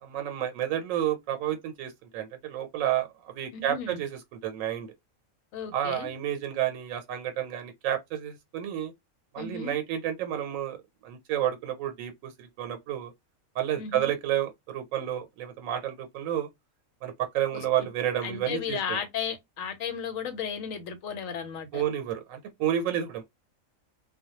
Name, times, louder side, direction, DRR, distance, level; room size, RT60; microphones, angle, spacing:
voice 1, 0.0-4.9 5.7-8.9 9.3-10.8 11.0-13.1 13.6-16.5 17.0-19.0 21.7-23.2, right 11 dB, 85° right, 1.0 m, -30 dB
voice 2, 3.5-4.0 5.5-6.1 9.4-9.7 13.8-14.1 17.5-17.6 18.2-21.8, left 7 dB, 80° left, 1.0 m, -34 dB
2.1 x 2.1 x 2.8 m
omnidirectional pair, 1.4 m